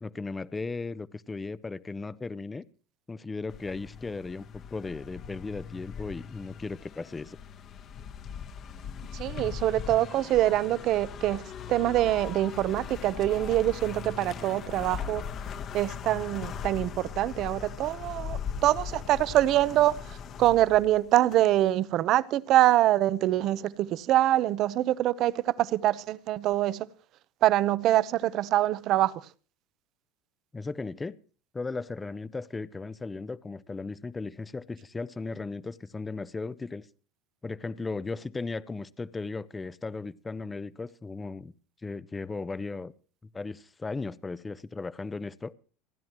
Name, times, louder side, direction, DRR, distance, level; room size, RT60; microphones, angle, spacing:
voice 1, 0.0-2.7 3.1-7.4 30.5-31.2 31.5-36.9 37.4-41.5 41.8-42.9 43.3-45.5, left 3 dB, 15° left, 0.7 m, -36 dB
sound 1, 3.5-21.7, left 7 dB, 35° left, 1.1 m, -40 dB
voice 2, 9.1-11.4 11.7-15.2 15.7-26.9 27.4-29.3, right 14 dB, 45° right, 0.8 m, -25 dB
30.0 x 10.5 x 3.1 m
supercardioid pair, 140°, 0 cm